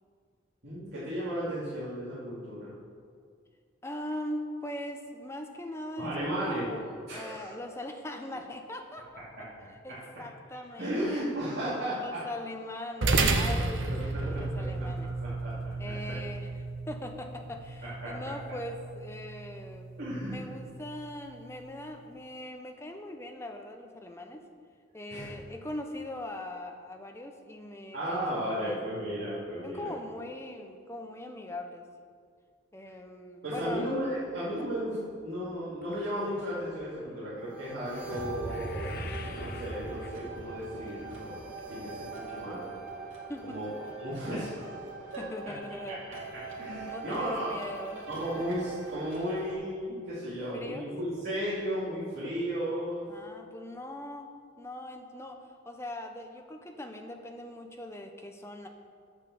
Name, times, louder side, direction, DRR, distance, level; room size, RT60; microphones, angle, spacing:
voice 1, 0.6-2.7 6.0-6.7 7.1-7.5 10.8-12.2 13.0-13.4 13.8-14.9 15.2-15.5 15.8-16.2 17.8-18.1 20.0-20.5 25.1-25.4 27.9-29.9 33.4-38.9 39.3-41.4 41.7-42.7 43.4-44.8 45.1-45.2 46.6-47.5 48.1-53.0, equal, 55° right, -12 dB, 3.1 m, -34 dB
voice 2, 3.8-9.2 9.8-11.3 12.0-15.1 15.8-16.5 16.9-19.9 20.2-24.4 24.9-29.3 29.6-31.8 32.7-34.0 34.6-34.7 43.3-43.6 45.2-46.0 46.8-48.1 48.4-48.5 50.5-50.9 53.1-54.3 54.6-58.7, left 1 dB, 15° left, 4 dB, 0.8 m, -41 dB
sound 1, 13.0-21.7, right 3 dB, 70° right, 1.0 m, -33 dB
sound 2, 35.8-42.2 42.5-42.9 43.5-43.6 43.9-44.0, left 4 dB, 50° left, 0.6 m, -48 dB
sound 3, 37.4-49.5, right 3 dB, 85° right, 2.6 m, -41 dB
9.0 x 8.2 x 7.0 m, 2.1 s
head